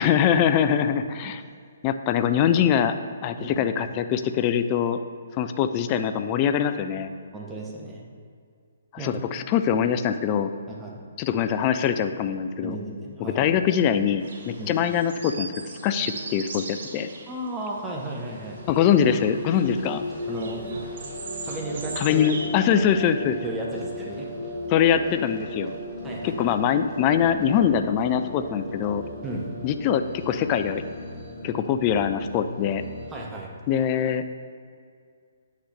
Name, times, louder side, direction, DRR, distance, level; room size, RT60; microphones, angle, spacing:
voice 1, 0.0-1.4 1.8-2.9 3.2-5.0 5.4-7.1 8.9-10.5 11.2-12.8 13.4-17.1 18.7-20.0 22.0-23.4 24.7-25.8 26.2-29.0 29.6-30.8 31.4-32.8 33.7-34.2, left 8 dB, 25° left, 9 dB, 0.4 m, -23 dB
voice 2, 3.4-3.7 7.3-8.0 9.0-9.2 10.7-11.0 12.6-13.5 14.6-14.8 17.3-18.6 20.3-20.7 21.4-22.3 23.4-24.3 26.0-26.6 29.2-29.5 31.2-31.3 33.1-33.5, right 1 dB, 10° right, -2 dB, 0.9 m, -34 dB
sound 1, 14.2-22.5, right 3 dB, 45° right, 1.0 m, -40 dB
sound 2, 18.0-33.2, left 1 dB, 5° left, 2.0 m, -37 dB
9.3 x 6.5 x 3.3 m, 2.2 s
figure-of-eight pair, 130°, 0 cm